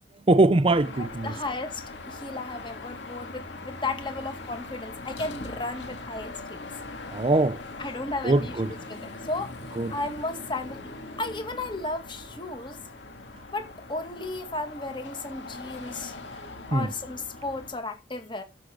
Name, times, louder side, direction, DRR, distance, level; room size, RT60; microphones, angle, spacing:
voice 1, 0.3-1.3 7.1-7.6 8.2-8.7 9.8-9.9 16.7-16.9, right 2 dB, 30° right, 0.5 m, -22 dB
Car passing by / Traffic noise roadway noise / Engine, 0.7-17.8, left 2 dB, 75° left, 2.5 m, -41 dB
voice 2, 1.0-6.7 7.8-8.6 8.9-9.5 9.9-10.9 11.2-12.8 13.5-16.2 16.7-18.4, left 2 dB, 25° left, 1.9 m, -34 dB
12.5 x 6.2 x 3.8 m
head